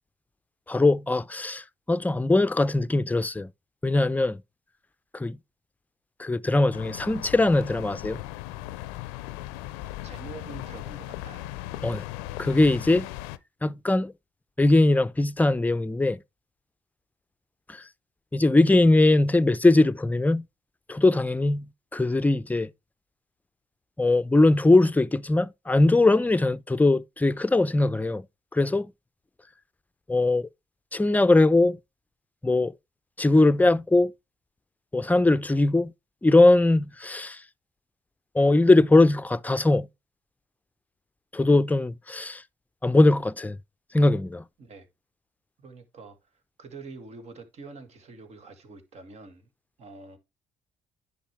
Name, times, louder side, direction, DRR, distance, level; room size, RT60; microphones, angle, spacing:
voice 1, 0.7-1.6 1.9-3.5 3.8-4.4 5.1-5.4 6.2-8.2 11.8-12.0 12.4-13.1 13.6-14.1 14.6-16.2 18.3-20.4 20.9-21.7 21.9-22.7 24.0-28.2 28.5-28.9 30.1-30.5 30.9-31.8 32.4-32.7 33.2-34.1 34.9-35.9 36.2-37.4 38.4-39.9 41.3-42.4 42.8-43.6 43.9-44.4, left 2 dB, 10° left, 0.6 m, -21 dB
sound 1, 6.7-13.4, left 15 dB, 85° left, 0.5 m, -38 dB
voice 2, 10.0-11.5 44.6-44.9 45.6-46.2 46.6-49.5 49.8-50.2, right 3 dB, 55° right, 2.0 m, -45 dB
10.0 x 5.3 x 3.2 m
hypercardioid pair, 55°, 13 cm